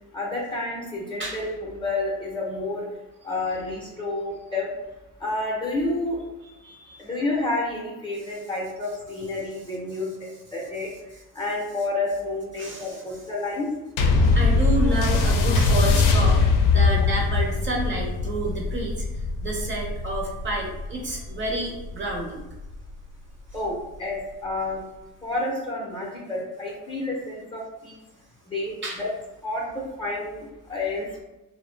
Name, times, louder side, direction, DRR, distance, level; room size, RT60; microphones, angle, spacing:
voice 1, 0.1-2.9 3.2-4.7 5.2-6.2 7.0-10.1 10.5-10.9 11.3-13.7 16.9-17.0 23.5-24.8 25.2-28.0 28.5-29.1 29.4-31.2, left 2 dB, 15° left, -3 dB, 0.6 m, -29 dB
voice 2, 1.2-1.5 6.5-7.2 8.2-8.3 12.6-13.2 14.2-22.4 28.8-29.0, right 1 dB, 35° right, -2 dB, 0.7 m, -30 dB
sound 1, 14.0-22.7 23.5-23.6, left 3 dB, 70° left, 0.5 m, -22 dB
2.5 x 2.0 x 3.1 m, 1.0 s
cardioid pair, 115°, 34 cm